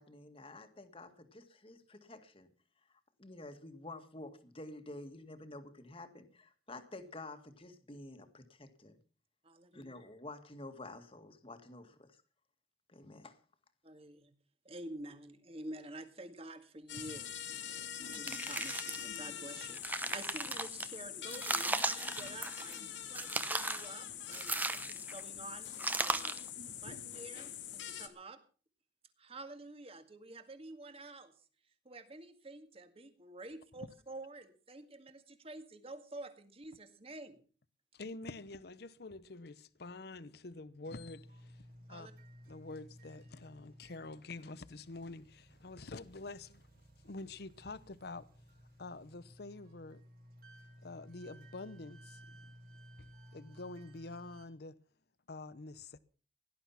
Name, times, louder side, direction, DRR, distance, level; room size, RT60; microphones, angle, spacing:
voice 1, 0.0-2.5 2.9-9.0 9.7-12.2 12.9-13.4, left 2 dB, 30° left, 1.9 m, -50 dB
voice 2, 9.4-9.9 13.8-14.3 14.7-17.6 18.0-26.4 26.8-28.4 29.2-31.3 31.9-37.4 41.9-42.1, right 2 dB, 35° right, 2.0 m, -49 dB
sound 1, 16.9-28.1, left 9 dB, 85° left, 2.1 m, -44 dB
sound 2, 18.1-19.2 19.6-20.9 21.3-22.8 23.1-23.9 24.3-25.2 25.8-26.5, right 2 dB, 10° right, 0.9 m, -36 dB
voice 3, 37.9-42.1 42.5-46.7 47.0-48.3 48.8-50.0 50.8-52.5 53.0-54.8 55.3-56.0, left 3 dB, 60° left, 0.8 m, -47 dB
sound 3, 40.9-54.4, equal, 55° right, 4.7 m, -57 dB
17.5 x 11.5 x 5.7 m
head